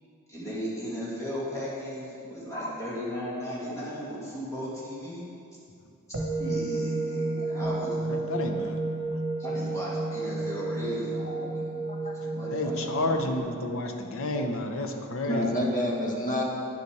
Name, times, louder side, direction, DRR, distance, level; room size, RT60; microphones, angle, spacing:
voice 1, 0.3-5.3 6.1-8.0 9.4-11.8 12.2-13.2, equal, 15° left, -8 dB, 2.4 m, -36 dB
sound 1, 6.1-13.4, right 2 dB, 50° right, 1.4 m, -31 dB
voice 2, 8.0-8.8 9.1-9.2 12.2-15.6, left 2 dB, 65° left, 4 dB, 0.8 m, -31 dB
voice 3, 11.9-12.2 15.3-16.4, left 1 dB, 35° left, -1 dB, 1.3 m, -29 dB
9.9 x 6.9 x 4.8 m, 2.5 s
head